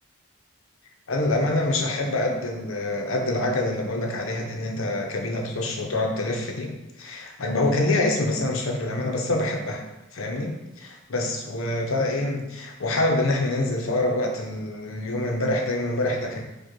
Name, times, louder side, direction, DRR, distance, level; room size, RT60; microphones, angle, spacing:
voice 1, 1.1-6.7 7.0-9.8 10.1-16.4, left 2 dB, 65° left, 1 dB, 0.7 m, -26 dB
4.9 x 2.3 x 4.6 m, 0.98 s
head